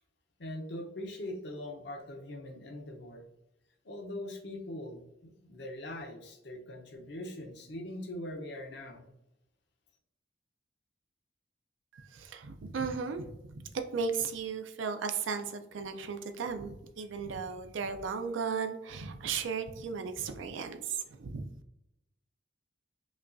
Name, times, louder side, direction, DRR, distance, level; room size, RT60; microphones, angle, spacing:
voice 1, 0.4-3.3 3.8-9.1, left 1 dB, 60° left, 3 dB, 0.7 m, -42 dB
voice 2, 11.9-13.6 13.9-21.5, right 5 dB, 75° right, 7 dB, 0.4 m, -36 dB
5.1 x 2.3 x 2.5 m, 0.85 s
head